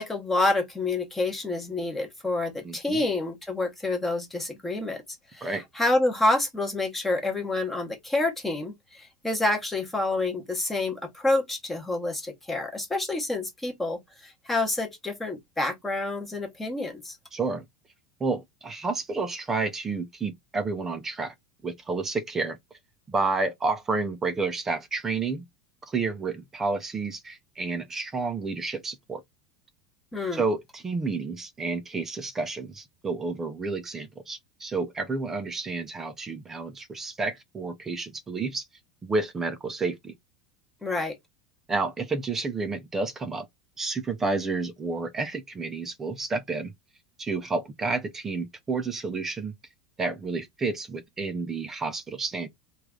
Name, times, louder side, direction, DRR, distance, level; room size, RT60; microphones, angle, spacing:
voice 1, 0.0-5.0 5.3-17.2 30.1-30.4 40.8-41.2, left 2 dB, 10° left, 0.9 m, -28 dB
voice 2, 2.6-3.0 5.4-5.6 17.3-17.7 18.2-21.3 21.6-22.6 23.1-25.4 25.9-29.2 30.3-38.7 39.0-40.1 41.7-43.5 43.8-46.7 47.2-49.5 50.0-52.5, right 3 dB, 15° right, 0.4 m, -30 dB
3.1 x 2.3 x 3.5 m
supercardioid pair, 150°, 2 cm